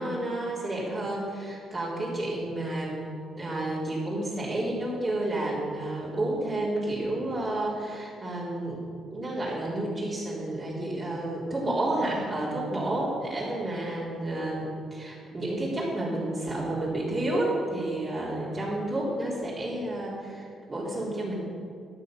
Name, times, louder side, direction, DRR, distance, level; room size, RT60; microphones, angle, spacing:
voice 1, 0.0-3.0 3.4-8.8 9.1-21.3, right 1 dB, 30° right, -7 dB, 3.9 m, -30 dB
13.0 x 8.5 x 6.7 m, 2.3 s
cardioid pair, 90°, 0 cm